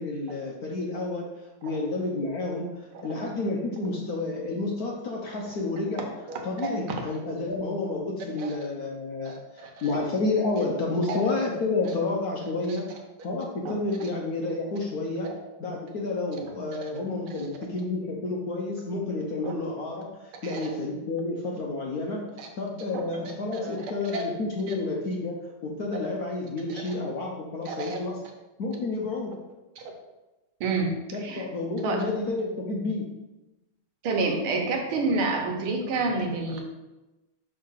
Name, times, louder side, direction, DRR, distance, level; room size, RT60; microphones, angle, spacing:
voice 1, 0.0-6.1 6.4-13.0 13.2-15.3 15.6-22.2 22.6-25.4 25.6-28.2 28.6-29.3 31.1-33.1, left 2 dB, 60° left, -1 dB, 1.0 m, -30 dB
voice 2, 6.3-6.7 8.4-8.5 9.3-9.8 11.1-11.2 13.7-13.8 15.2-15.4 16.8-16.9 19.4-19.5 20.4-20.7 22.4-22.5 22.9-23.0 23.5-23.7 24.1-24.3 24.7-24.8 26.7-26.9 27.7-28.0 29.8-29.9 30.6-31.0 31.2-31.4 31.8-32.1 34.0-36.6, right 3 dB, 80° right, 2 dB, 1.8 m, -29 dB
5.5 x 3.7 x 5.6 m, 1.0 s
omnidirectional pair, 2.3 m